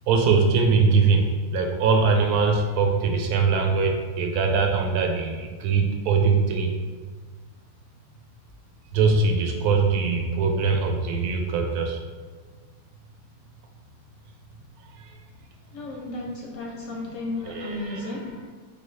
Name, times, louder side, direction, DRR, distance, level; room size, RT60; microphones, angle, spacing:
voice 1, 0.1-6.7 8.9-12.0 14.9-15.1 17.5-18.0, right 4 dB, 75° right, 2 dB, 1.0 m, -22 dB
voice 2, 15.7-18.5, left 2 dB, 70° left, -1 dB, 0.8 m, -34 dB
4.4 x 2.7 x 3.2 m, 1.5 s
omnidirectional pair, 1.7 m